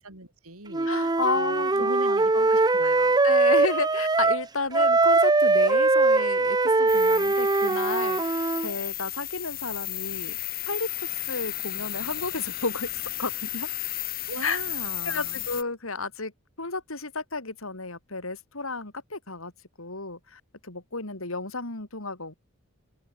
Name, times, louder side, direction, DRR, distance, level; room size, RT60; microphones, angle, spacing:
voice 1, 0.0-3.2 14.3-15.4, right 2 dB, 85° right, 6.0 m, -40 dB
Wind instrument woodwind instrument, 0.7-4.4 4.7-8.7, right 3 dB, 20° right, 0.5 m, -22 dB
voice 2, 0.9-2.5 3.2-10.4 10.7-13.7 14.4-14.6 15.0-16.3 16.6-19.5 19.8-22.3, left 3 dB, 70° left, 3.8 m, -32 dB
sound 1, 6.9-15.6, left 15 dB, 45° left, 1.6 m, -34 dB
head